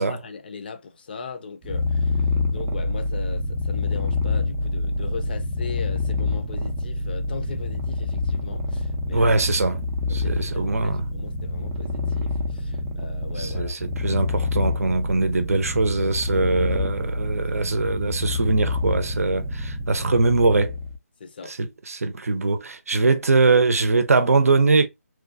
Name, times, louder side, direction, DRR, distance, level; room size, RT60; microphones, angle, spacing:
voice 1, 0.1-9.4 10.1-13.8 21.2-21.5, left 5 dB, 35° left, 0.6 m, -38 dB
Purr, 1.6-21.0, left 3 dB, 15° right, 0.4 m, -27 dB
voice 2, 9.1-9.8 10.1-11.1 13.4-20.7 21.5-24.9, right 3 dB, 65° right, 0.6 m, -22 dB
3.1 x 2.3 x 2.5 m
figure-of-eight pair, 160°, 8 cm